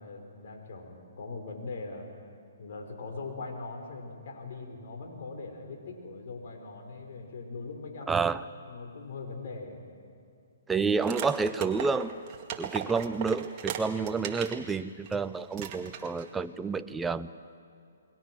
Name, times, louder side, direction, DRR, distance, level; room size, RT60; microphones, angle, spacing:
voice 1, 0.0-2.1 2.6-8.4 8.7-9.8, left 3 dB, 60° left, 3 dB, 5.3 m, -41 dB
voice 2, 8.1-8.4 10.7-12.1 12.5-17.3, right 4 dB, 10° right, 11 dB, 0.6 m, -29 dB
sound 1, 11.0-14.6 15.1-15.2 15.5-16.3, right 8 dB, 30° right, 2.0 m, -37 dB
28.5 x 21.5 x 6.3 m, 2.5 s
hypercardioid pair, 145°, 0 cm